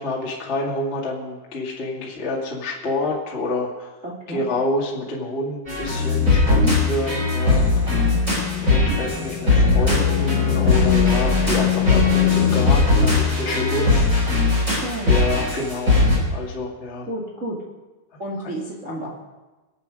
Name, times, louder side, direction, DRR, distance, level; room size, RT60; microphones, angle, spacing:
voice 1, 0.0-3.9 4.3-7.9 8.4-14.8 15.1-17.1, left 2 dB, 45° left, -3 dB, 0.8 m, -28 dB
voice 2, 4.0-4.4 6.5-6.7 8.7-8.9 14.7-15.2 17.1-17.6 18.2-19.2, right 1 dB, 75° right, -3 dB, 0.6 m, -30 dB
sound 1, 5.7-16.2, left 3 dB, 15° right, 4.6 m, -19 dB
sound 2, 5.9-12.6, left 11 dB, 70° left, 3.2 m, -25 dB
24.0 x 8.7 x 5.2 m, 1.2 s
omnidirectional pair, 5.8 m